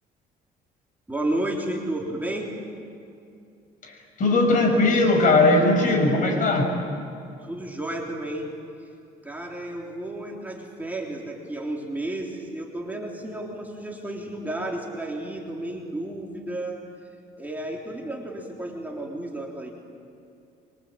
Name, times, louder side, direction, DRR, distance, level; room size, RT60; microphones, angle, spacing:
voice 1, 1.1-2.5 7.4-8.5 8.8-8.9 9.2-16.9 17.4-19.7, right 1 dB, 10° right, -1 dB, 3.6 m, -32 dB
voice 2, 3.8-6.8, left 2 dB, 50° left, 2 dB, 6.3 m, -19 dB
24.5 x 24.0 x 8.8 m, 2.5 s
cardioid pair, 110°, 17 cm